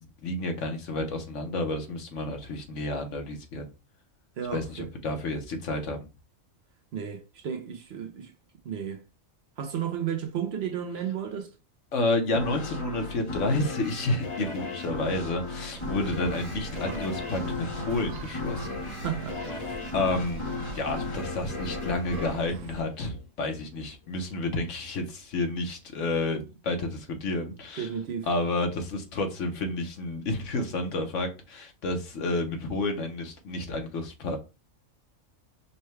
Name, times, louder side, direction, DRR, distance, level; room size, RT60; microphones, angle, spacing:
voice 1, 0.2-3.7 4.5-6.1 11.9-18.8 19.9-20.4 20.7-27.9 28.2-34.4, left 2 dB, 70° left, 1.1 m, -30 dB
voice 2, 4.4-4.9 6.9-8.3 8.6-9.0 9.6-11.5 19.0-19.7 27.8-28.3, right 8 dB, 60° right, 0.8 m, -33 dB
sound 1, 12.3-23.5, left 3 dB, 30° left, 0.8 m, -36 dB
sound 2, 15.7-22.8, right 4 dB, 90° right, 1.0 m, -42 dB
5.5 x 2.2 x 3.1 m
omnidirectional pair, 1.3 m